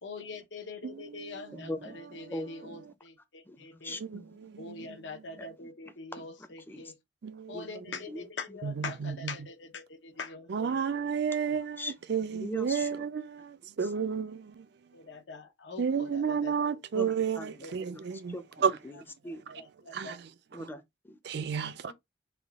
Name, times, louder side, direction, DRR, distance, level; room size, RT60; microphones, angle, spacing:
voice 1, 0.0-4.0 4.6-6.9 7.5-10.8 14.9-16.5 17.6-17.7 18.9-19.0 19.6-20.2 21.8-21.9, left 4 dB, 80° left, 0.8 m, -43 dB
voice 2, 1.5-2.8 3.5-4.3 4.8-4.9 5.4-5.7 6.1-6.3 6.7-6.8 7.5-7.6 8.1-8.3 11.8-11.9 12.3-13.1 13.8-13.9 16.9-17.7 18.1-19.4 20.5-21.2, left 1 dB, 10° left, 0.5 m, -41 dB
voice 3, 7.2-7.6 8.6-9.1 10.5-11.8 12.1-13.5 13.8-14.6 15.8-18.3 18.6-18.7 19.9-20.2 21.3-21.9, right 6 dB, 65° right, 0.4 m, -31 dB
3.5 x 2.3 x 3.5 m
head